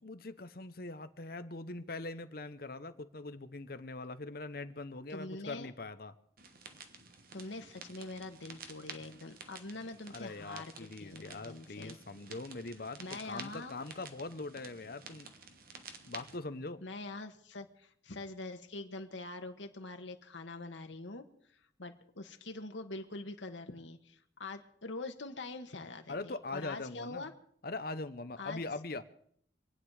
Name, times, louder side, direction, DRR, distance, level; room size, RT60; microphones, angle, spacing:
voice 1, 0.0-6.1 10.1-15.3 16.1-16.8 26.1-27.3 27.6-29.0, left 2 dB, 55° left, 11 dB, 0.9 m, -42 dB
voice 2, 5.1-5.7 7.3-12.0 13.0-13.7 16.8-21.2 21.8-27.3 28.4-28.6, left 2 dB, 85° left, 6 dB, 1.5 m, -44 dB
sound 1, 6.4-16.4, right 5 dB, 50° right, 1.4 m, -51 dB
26.5 x 9.1 x 4.9 m, 0.65 s
head